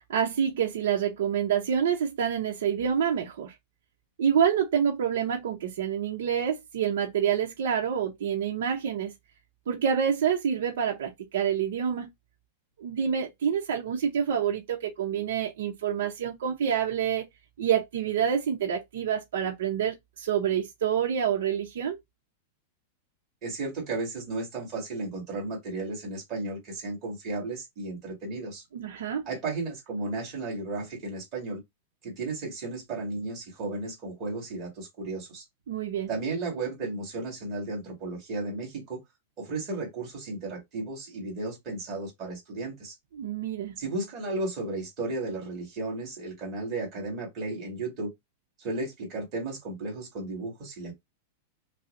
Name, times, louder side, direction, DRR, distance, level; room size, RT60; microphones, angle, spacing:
voice 1, 0.1-3.5 4.2-9.1 9.7-12.1 12.8-17.3 17.6-22.0 28.7-29.2 35.7-36.1 43.1-43.7, right 8 dB, 65° right, 0.7 m, -27 dB
voice 2, 23.4-28.6 29.3-31.6 32.0-35.4 36.1-39.0 39.4-42.9 43.8-48.1 48.6-50.9, right 2 dB, 25° right, 1.9 m, -34 dB
5.5 x 2.1 x 2.6 m
supercardioid pair, 175°, 0 cm